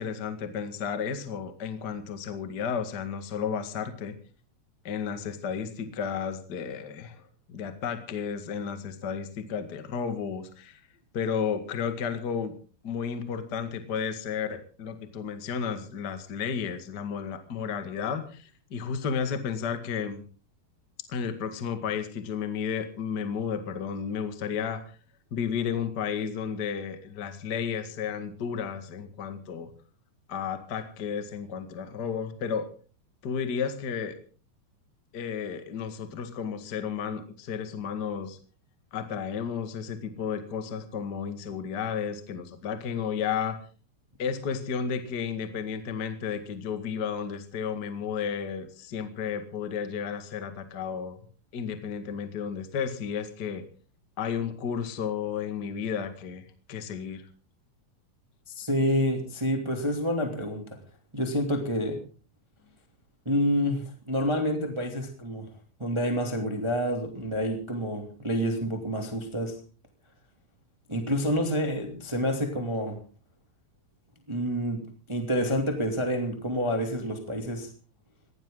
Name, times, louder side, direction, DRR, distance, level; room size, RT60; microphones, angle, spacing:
voice 1, 0.0-4.2 4.8-7.2 7.5-10.8 11.1-12.5 12.8-20.2 21.1-24.8 25.3-29.7 30.3-32.7 33.2-34.2 35.1-38.4 38.9-43.6 44.2-51.2 51.5-53.6 54.2-57.2, left 7 dB, 40° left, 8 dB, 1.7 m, -32 dB
voice 2, 58.5-60.8 61.1-62.0 63.2-65.5 65.8-69.5 70.9-73.0 74.3-74.8 75.1-77.7, equal, 10° right, 4 dB, 2.0 m, -28 dB
21.0 x 16.0 x 3.9 m, 0.38 s
omnidirectional pair, 4.3 m